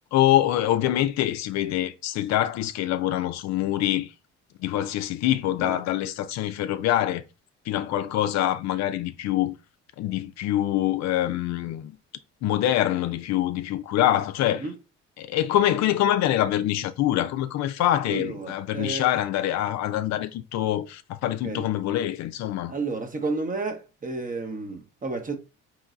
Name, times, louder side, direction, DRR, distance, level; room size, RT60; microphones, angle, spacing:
voice 1, 0.1-4.1 4.6-7.2 7.7-9.6 10.0-12.0 12.4-14.7 15.2-22.7, left 13 dB, 65° left, 0.4 m, -25 dB
voice 2, 18.1-19.1 21.4-21.7 22.7-25.4, right 3 dB, 25° right, 0.8 m, -31 dB
3.8 x 3.0 x 2.4 m
supercardioid pair, 70°, 30 cm